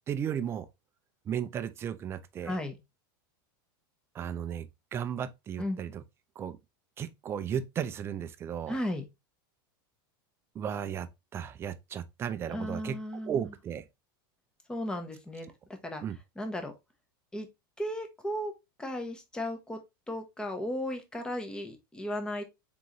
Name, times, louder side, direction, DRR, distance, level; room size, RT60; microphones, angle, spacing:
voice 1, 0.1-0.7 1.3-2.6 4.1-6.0 6.4-6.6 7.0-8.8 10.5-13.0 13.2-13.8 16.0-16.2, right 8 dB, 20° right, 0.4 m, -35 dB
voice 2, 2.4-2.7 5.6-5.8 8.7-9.0 12.5-13.5 14.7-15.5 15.8-16.0 16.4-16.7 17.3-17.5 17.8-18.5 18.8-19.8 20.1-22.4, left 1 dB, 5° left, 0.7 m, -35 dB
3.8 x 3.8 x 2.9 m
supercardioid pair, 150°, 12 cm